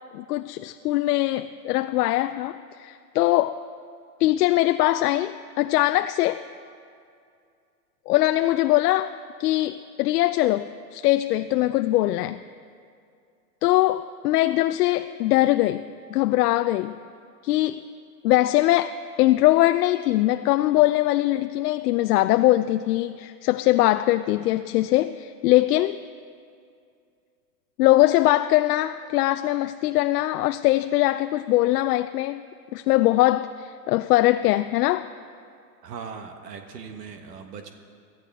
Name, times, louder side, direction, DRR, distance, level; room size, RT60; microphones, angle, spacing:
voice 1, 0.1-3.6 4.2-6.4 8.1-9.1 9.4-12.4 13.6-17.0 17.4-17.8 18.2-18.9 19.2-26.0 27.8-32.4 32.7-35.1, left 16 dB, 75° left, 10 dB, 0.6 m, -21 dB
voice 2, 35.8-37.8, right 6 dB, 80° right, 5 dB, 1.5 m, -39 dB
22.0 x 14.0 x 3.5 m, 2.4 s
hypercardioid pair, 115°, 48 cm